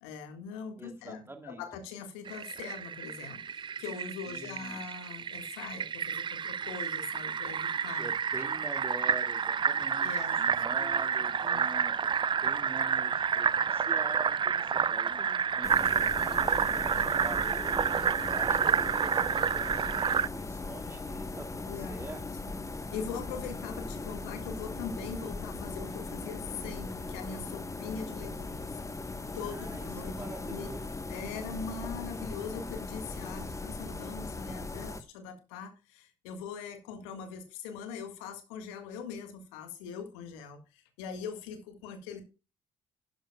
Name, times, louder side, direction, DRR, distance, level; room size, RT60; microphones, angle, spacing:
voice 1, 0.0-8.1 9.7-10.4 10.8-11.0 11.4-11.6 21.6-22.0 22.4-28.7 29.3-30.1 30.4-30.7 31.1-42.2, left 6 dB, 75° left, 7 dB, 1.7 m, -42 dB
voice 2, 0.8-1.6 4.3-4.8 7.9-22.2 29.4-31.0, right 2 dB, 15° right, 6 dB, 2.2 m, -46 dB
Fill (with liquid), 2.3-20.3, right 7 dB, 30° right, 0.4 m, -29 dB
sound 1, 15.6-35.0, left 3 dB, 20° left, 1.2 m, -39 dB
12.0 x 10.0 x 2.3 m, 0.30 s
figure-of-eight pair, 45°, 16 cm